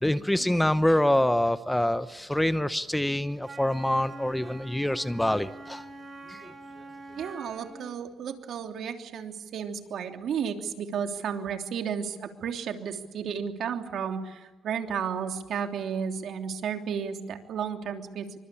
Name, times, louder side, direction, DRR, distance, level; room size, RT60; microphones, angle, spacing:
voice 1, 0.0-5.8 6.3-6.5, left 1 dB, 5° left, 13 dB, 0.9 m, -25 dB
Wind instrument woodwind instrument, 3.4-7.9, right 2 dB, 40° right, 6.4 m, -45 dB
voice 2, 7.2-18.3, right 7 dB, 75° right, 5 dB, 3.1 m, -33 dB
28.5 x 24.5 x 8.6 m, 1.2 s
cardioid pair, 105°, 0 cm